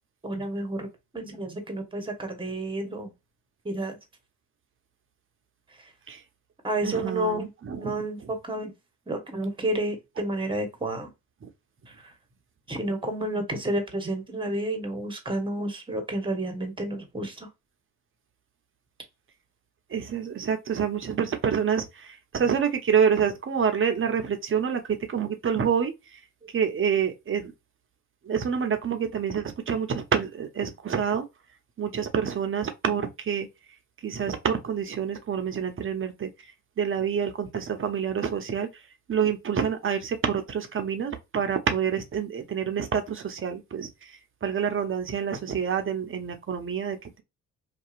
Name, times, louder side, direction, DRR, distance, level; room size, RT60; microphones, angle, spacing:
voice 1, 0.2-0.9 1.1-3.1 3.6-4.0 6.6-7.5 7.8-8.7 9.1-11.1 12.7-17.5, right 1 dB, 15° right, 1.0 m, -30 dB
voice 2, 6.8-7.9 19.9-24.8 25.1-25.9 26.5-27.5 28.3-31.2 31.8-33.5 34.0-36.3 36.8-38.7 39.1-44.1 44.4-47.2, right 7 dB, 35° right, 0.7 m, -27 dB
2.7 x 2.3 x 2.4 m
hypercardioid pair, 55°, 38 cm